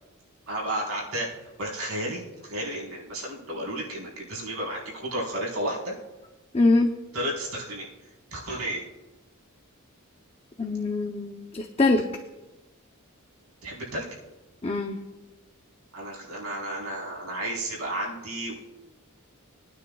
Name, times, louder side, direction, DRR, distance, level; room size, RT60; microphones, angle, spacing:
voice 1, 0.5-1.3 1.6-6.0 7.1-7.8 8.3-8.8 13.6-14.1 15.9-18.6, right 1 dB, 85° right, -4 dB, 4.2 m, -32 dB
voice 2, 6.5-6.9 10.6-12.0 14.6-15.0, left 2 dB, 25° left, 3 dB, 0.7 m, -23 dB
24.0 x 9.4 x 2.3 m, 1.1 s
head